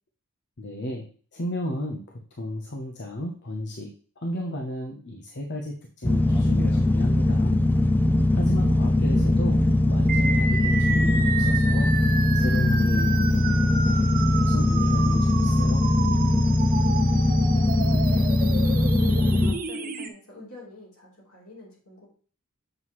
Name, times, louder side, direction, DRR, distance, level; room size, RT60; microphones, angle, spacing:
voice 1, 0.6-3.9 4.2-7.6 8.3-11.9 12.3-14.0 14.4-15.8, left 1 dB, 55° left, 3 dB, 0.9 m, -34 dB
sound 1, 6.0-19.5, left 1 dB, 10° left, 0.4 m, -21 dB
sound 2, 10.1-20.1, right 5 dB, 40° right, 0.8 m, -31 dB
voice 2, 16.8-22.1, left 2 dB, 75° left, -4 dB, 3.5 m, -47 dB
7.7 x 5.8 x 3.1 m, 0.43 s
head